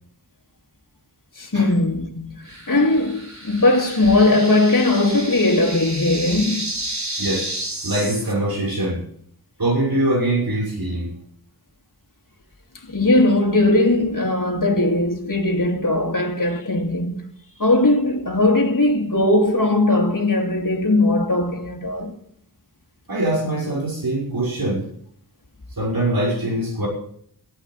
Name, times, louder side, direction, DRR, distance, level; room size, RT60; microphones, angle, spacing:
voice 1, 1.4-6.8 12.9-17.3 17.6-22.1, left 2 dB, 55° left, 2.5 m, -19 dB
sound 1, 2.5-8.3, right 1 dB, 45° right, 3.5 m, -31 dB
voice 2, 7.8-9.0 9.6-11.1 23.1-24.9 25.8-26.9, right 1 dB, 65° right, 6.3 m, -23 dB
14.0 x 9.0 x 9.0 m
wide cardioid pair, 45°, 39 cm